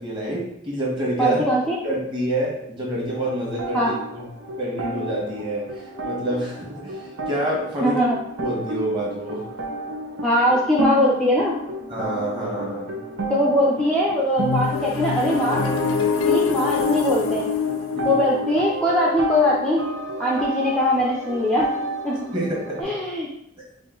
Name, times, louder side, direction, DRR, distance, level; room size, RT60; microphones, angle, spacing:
voice 1, 0.0-1.4 1.8-4.2 4.6-8.0 8.4-9.4 11.9-12.9 17.9-18.2 22.3-22.9, right 1 dB, 25° right, -4 dB, 1.4 m, -27 dB
voice 2, 1.2-1.8 3.7-3.9 7.8-8.2 10.2-11.6 13.3-15.6 16.2-17.4 18.0-19.9 20.2-21.7 22.0-22.2 22.8-23.3, left 1 dB, 5° left, -5 dB, 0.5 m, -21 dB
sound 1, 3.1-22.8, right 2 dB, 85° right, 0.8 m, -32 dB
sound 2, 14.4-20.2, left 6 dB, 90° left, 0.5 m, -25 dB
5.0 x 2.6 x 3.8 m, 0.75 s
head